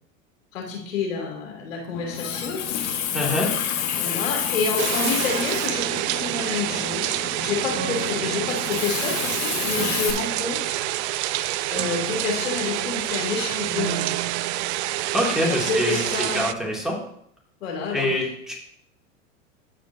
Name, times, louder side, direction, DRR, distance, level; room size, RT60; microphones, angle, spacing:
voice 1, 0.5-2.6 3.9-10.6 11.7-14.1 15.4-16.4 17.6-18.1, left 4 dB, 80° left, -1 dB, 2.9 m, -29 dB
Water tap faucet, 1.9-10.1, left 9 dB, 55° left, 1.7 m, -29 dB
voice 2, 3.1-3.5 15.1-16.0 16.3-17.0 17.9-18.6, left 1 dB, ahead, -3 dB, 2.6 m, -25 dB
sound 1, 4.8-16.5, right 15 dB, 60° right, 0.5 m, -27 dB
Piano, 7.8-15.7, right 6 dB, 35° right, 1.0 m, -37 dB
14.5 x 5.1 x 2.7 m, 0.71 s
hypercardioid pair, 95°, 38 cm